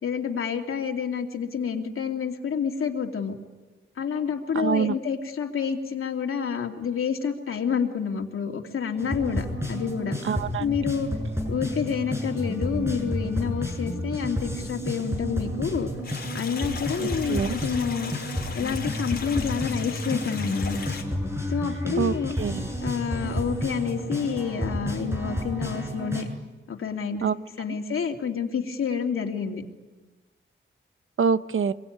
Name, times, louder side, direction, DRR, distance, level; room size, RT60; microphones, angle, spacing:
voice 1, 0.0-3.3 4.0-10.2 10.6-11.1 11.5-15.9 16.3-18.1 18.5-20.8 21.5-22.3 22.8-26.3 26.7-27.3 27.6-29.6, left 6 dB, 90° left, 3 dB, 2.8 m, -28 dB
voice 2, 4.5-5.0 10.2-10.6 17.3-17.6 22.0-22.6 27.2-27.3 27.7-27.8 31.2-31.7, right 6 dB, 75° right, 12 dB, 1.0 m, -25 dB
sound 1, 9.0-26.2, equal, 10° right, 7.4 m, -31 dB
sound 2, 16.0-21.0, left 5 dB, 50° left, 4.9 m, -38 dB
26.0 x 23.0 x 9.5 m, 1.2 s
wide cardioid pair, 120°, 21 cm